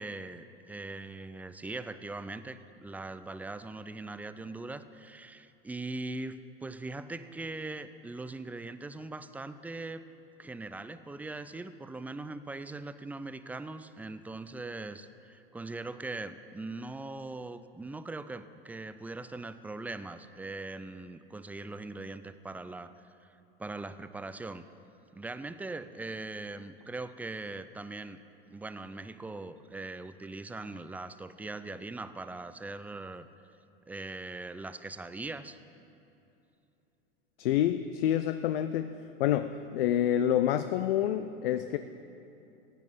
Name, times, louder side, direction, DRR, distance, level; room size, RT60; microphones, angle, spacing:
voice 1, 0.0-10.0 10.4-22.9 23.6-24.6 25.1-28.2 28.5-33.3 33.9-35.6, right 2 dB, 5° right, 12 dB, 0.4 m, -41 dB
voice 2, 37.4-38.9 39.2-41.8, left 11 dB, 75° left, 10 dB, 0.5 m, -27 dB
15.5 x 9.2 x 5.6 m, 2.8 s
hypercardioid pair, 90°, 29 cm